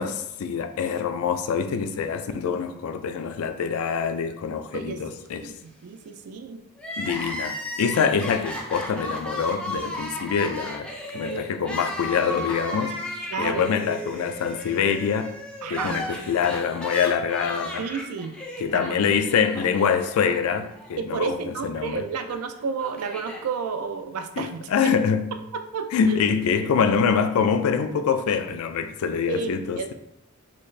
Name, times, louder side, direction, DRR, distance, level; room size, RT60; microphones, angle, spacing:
voice 1, 0.0-5.5 7.0-13.0 13.4-15.3 15.7-17.9 18.6-22.0 24.4-25.3 25.9-29.9, left 6 dB, 75° left, 0.3 m, -25 dB
voice 2, 4.7-6.6 11.1-11.6 13.3-13.6 15.6-16.0 17.8-18.3 18.7-18.9 21.0-24.9 25.7-26.2 29.3-29.9, right 6 dB, 85° right, 0.4 m, -31 dB
Crying sobbing, 6.8-20.9 21.2-21.3 22.3-23.4, left 1 dB, 5° left, 0.4 m, -35 dB
4.1 x 2.4 x 3.1 m
head